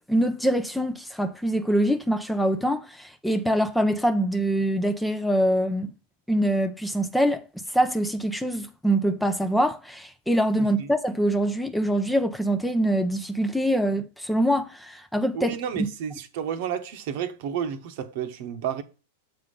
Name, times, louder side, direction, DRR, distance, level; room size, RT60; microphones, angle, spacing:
voice 1, 0.1-5.9 6.3-7.4 7.7-15.6, right 1 dB, ahead, 0.6 m, -24 dB
voice 2, 15.3-18.8, right 8 dB, 55° right, 0.9 m, -31 dB
7.6 x 3.7 x 5.4 m
hypercardioid pair, 100°, 0 cm